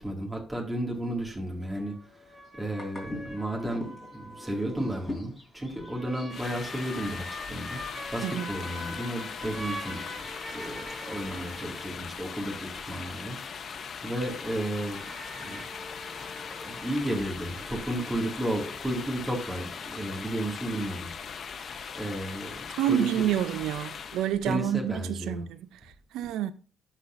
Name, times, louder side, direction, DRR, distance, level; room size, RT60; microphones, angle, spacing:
voice 1, 0.0-2.3 2.6-7.8 8.1-15.0 15.4-15.7 16.4-21.7 21.9-23.2 24.2-25.4, right 1 dB, 15° right, 2.2 m, -33 dB
sound 1, 1.7-17.8, left 1 dB, 10° left, 3.6 m, -42 dB
sound 2, 6.3-24.3, left 6 dB, 50° left, 0.6 m, -40 dB
voice 2, 22.8-26.5, right 11 dB, 90° right, 0.4 m, -29 dB
11.5 x 4.2 x 2.6 m
cardioid pair, 90°, 0 cm